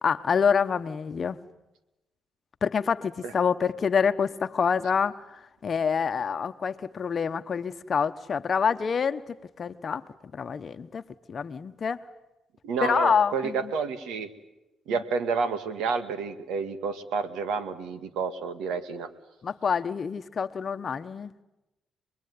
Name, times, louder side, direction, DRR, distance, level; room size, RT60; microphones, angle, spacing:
voice 1, 0.0-1.4 2.6-5.3 5.6-10.0 10.3-11.0 11.3-12.0 12.8-13.7 19.4-21.3, left 6 dB, 45° left, 10 dB, 1.0 m, -27 dB
voice 2, 12.6-14.3 14.9-19.1, right 5 dB, 90° right, 11 dB, 2.0 m, -30 dB
25.5 x 21.5 x 9.6 m, 0.99 s
cardioid pair, 90°, 0 cm